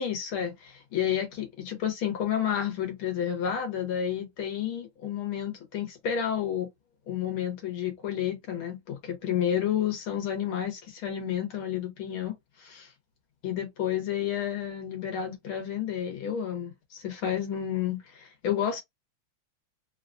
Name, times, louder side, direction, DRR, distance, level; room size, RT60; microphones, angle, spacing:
voice 1, 0.0-6.7 7.1-12.9 13.4-18.8, left 9 dB, 75° left, 2.1 m, -31 dB
4.3 x 2.4 x 2.5 m
omnidirectional pair, 2.3 m